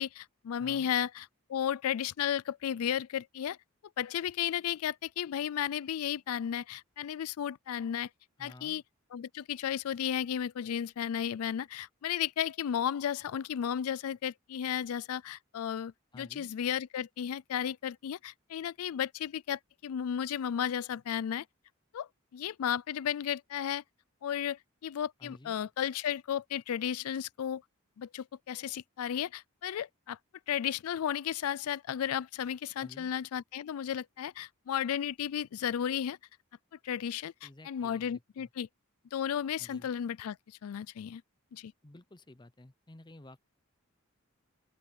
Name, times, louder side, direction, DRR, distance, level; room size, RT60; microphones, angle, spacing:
voice 1, 0.0-3.6 4.0-8.1 8.4-8.8 9.1-21.4 21.9-23.8 24.2-27.6 28.0-30.2 30.5-36.2 36.8-38.7 39.1-40.4 40.6-41.2 41.5-41.7, left 9 dB, 90° left, 0.4 m, -34 dB
voice 2, 0.6-0.9 8.4-8.8 16.1-16.5 25.2-25.6 32.8-33.1 37.4-38.5 39.6-39.9 41.8-43.4, left 1 dB, 20° left, 0.7 m, -52 dB
open air
head